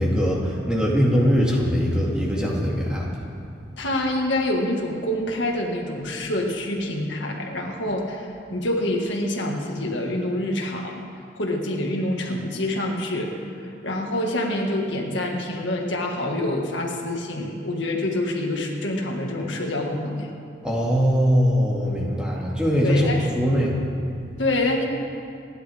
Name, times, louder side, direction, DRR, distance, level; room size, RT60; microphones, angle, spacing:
voice 1, 0.0-3.1 20.6-23.7, equal, 5° right, -5 dB, 2.3 m, -21 dB
voice 2, 3.8-11.0 11.4-20.3 22.8-23.3 24.4-24.9, left 1 dB, 75° left, 0 dB, 1.9 m, -26 dB
28.5 x 11.0 x 3.6 m, 2.3 s
head